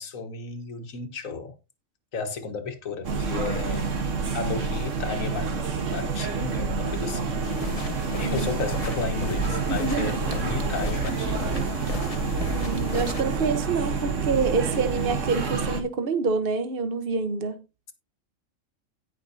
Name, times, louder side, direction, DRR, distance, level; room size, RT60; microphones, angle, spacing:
voice 1, 0.0-1.5 2.1-3.9 4.3-5.5 5.9-7.3 8.2-11.5, left 4 dB, 85° left, 1.7 m, -33 dB
sound 1, 3.0-15.8, right 4 dB, 70° right, 1.6 m, -28 dB
sound 2, 7.4-13.2, left 4 dB, 30° left, 0.9 m, -36 dB
voice 2, 8.2-8.5 9.8-10.2 12.5-17.6, right 4 dB, 45° right, 1.2 m, -27 dB
16.5 x 5.9 x 2.7 m
omnidirectional pair, 1.4 m